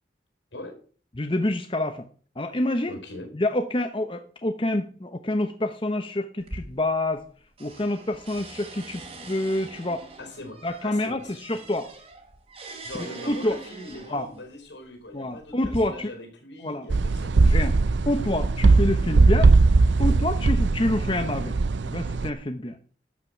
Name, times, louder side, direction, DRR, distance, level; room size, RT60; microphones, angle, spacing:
voice 1, 1.2-2.0 2.4-3.0 3.3-7.3 7.6-10.1 10.6-11.9 13.2-13.6 14.1-14.3 15.1-16.1 16.6-16.9 17.4-17.8 18.1-19.5 20.0-21.6 21.8-22.8, left 1 dB, 25° left, 7 dB, 0.9 m, -27 dB
voice 2, 2.9-3.3 10.2-11.6 12.8-17.4, left 2 dB, 70° left, 5 dB, 4.3 m, -41 dB
sound 1, 6.4-7.3 7.6-14.4 15.2-15.8, right 2 dB, 30° right, 2.9 m, -42 dB
sound 2, 16.9-22.3, right 3 dB, 75° right, 0.5 m, -20 dB
12.5 x 5.9 x 7.9 m, 0.42 s
head